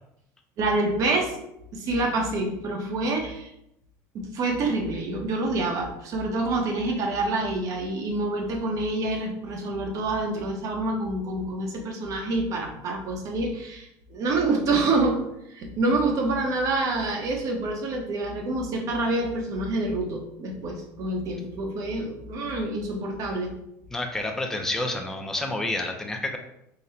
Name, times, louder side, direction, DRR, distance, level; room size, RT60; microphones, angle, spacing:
voice 1, 0.6-1.4 1.7-3.5 4.1-15.2 15.5-23.5, right 2 dB, 45° right, 2 dB, 0.8 m, -27 dB
voice 2, 23.9-26.4, left 2 dB, 5° left, 3 dB, 0.4 m, -29 dB
3.9 x 2.1 x 4.0 m, 0.81 s
cardioid pair, 140°, 8 cm